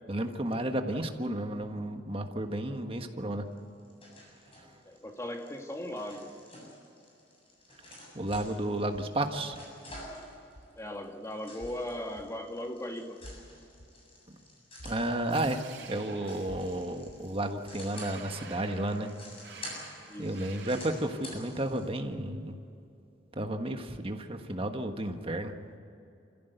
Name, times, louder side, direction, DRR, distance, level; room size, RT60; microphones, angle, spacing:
voice 1, 0.1-3.4 8.1-9.6 14.8-15.6 15.9-19.1 19.6-19.9 20.2-22.5 23.3-25.5, right 1 dB, 30° right, 5 dB, 1.5 m, -32 dB
sound 1, 3.5-21.8, left 1 dB, 30° left, 7.6 m, -50 dB
voice 2, 4.9-6.3 10.8-13.2 20.1-20.4, left 1 dB, 15° left, 3 dB, 1.9 m, -38 dB
sound 2, 9.9-10.1 10.6-10.7 11.6-11.8 12.2-12.3 13.2-13.4 13.8-13.9 14.8-15.1 15.4-15.5 16.4-16.7 17.1-17.2, equal, 75° left, 2.6 m, -48 dB
sound 3, 15.3-21.3, right 5 dB, 80° right, 4.2 m, -50 dB
27.0 x 15.5 x 8.1 m, 2.7 s
head